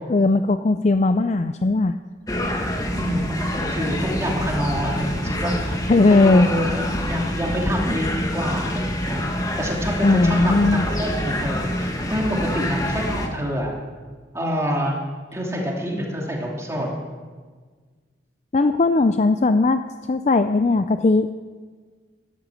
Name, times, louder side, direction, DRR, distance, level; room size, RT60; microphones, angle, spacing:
voice 1, 0.1-1.9 5.9-6.5 10.0-10.8 18.5-19.8 20.1-21.3, left 3 dB, 40° left, 10 dB, 0.4 m, -18 dB
sound 1, 2.3-13.3, left 1 dB, 20° left, 1.7 m, -26 dB
voice 2, 2.9-5.8 6.1-9.2 9.6-13.7 14.3-14.9 15.3-16.9, equal, 15° right, -2 dB, 2.9 m, -27 dB
13.5 x 13.0 x 7.7 m, 1.5 s
head